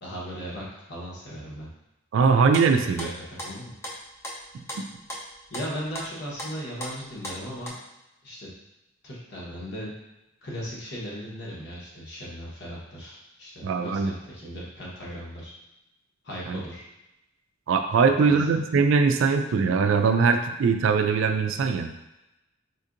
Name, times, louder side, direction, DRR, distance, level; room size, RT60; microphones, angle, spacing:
voice 1, 0.0-1.7 3.0-3.7 5.5-7.7 8.2-8.5 9.0-9.9 10.4-15.5 16.2-16.8 18.0-18.4, equal, 60° left, -5 dB, 1.1 m, -37 dB
voice 2, 2.1-3.1 4.5-4.8 13.6-14.1 16.5-16.6 17.7-21.9, right 5 dB, 70° right, 7 dB, 0.3 m, -21 dB
sound 1, 2.5-7.7, equal, 15° left, 0.6 m, -38 dB
4.2 x 2.7 x 2.5 m, 0.94 s
head